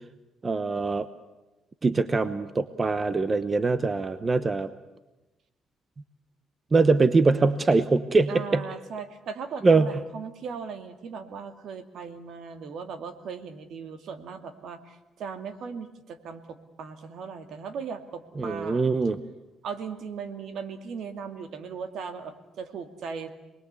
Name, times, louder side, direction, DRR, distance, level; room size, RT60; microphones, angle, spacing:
voice 1, 0.4-1.1 1.8-4.7 6.7-8.6 9.6-9.9 18.4-19.2, right 3 dB, 25° right, 13 dB, 0.9 m, -23 dB
voice 2, 8.3-18.8 19.6-23.3, right 6 dB, 65° right, 9 dB, 2.3 m, -38 dB
27.5 x 21.0 x 8.2 m, 1.0 s
cardioid pair, 110°, 0 cm